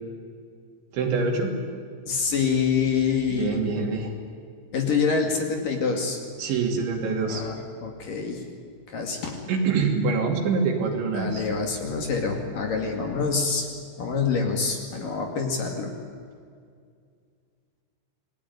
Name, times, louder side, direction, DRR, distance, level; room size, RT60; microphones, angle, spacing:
voice 1, 0.9-1.5 3.3-4.1 6.4-7.4 9.5-11.4, right 4 dB, 70° right, 2 dB, 5.2 m, -25 dB
voice 2, 2.1-3.6 4.7-6.2 7.2-8.4 8.9-9.4 11.1-13.7 14.0-15.9, left 5 dB, 50° left, 3 dB, 3.6 m, -26 dB
28.0 x 20.5 x 9.6 m, 2.2 s
omnidirectional pair, 5.6 m